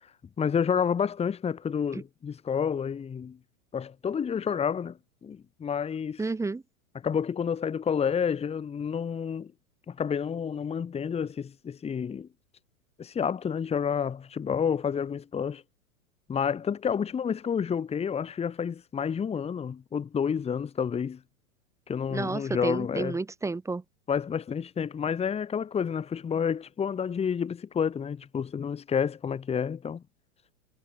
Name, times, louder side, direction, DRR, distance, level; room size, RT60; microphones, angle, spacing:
voice 1, 0.4-3.4 3.7-5.0 5.2-6.2 7.0-9.5 9.9-12.3 13.0-15.6 16.3-21.2 21.9-23.2 24.1-30.0, left 7 dB, 15° left, 1.7 m, -29 dB
voice 2, 6.2-6.6 22.1-23.8, right 3 dB, 5° right, 1.1 m, -31 dB
hypercardioid pair, 125°, 43 cm